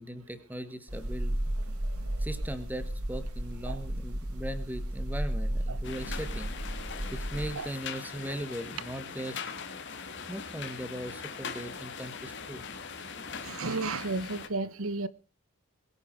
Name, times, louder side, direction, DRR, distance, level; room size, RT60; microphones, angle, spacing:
voice 1, 0.0-1.5 2.2-6.6 7.1-9.5 10.3-12.6, right 1 dB, 10° right, 1.8 m, -39 dB
sound 1, 0.9-7.5, right 1 dB, 90° right, 4.7 m, -34 dB
sound 2, 5.8-14.5, left 5 dB, 50° left, 2.6 m, -41 dB
voice 2, 13.4-15.1, right 3 dB, 70° right, 0.9 m, -33 dB
22.0 x 9.8 x 4.9 m
head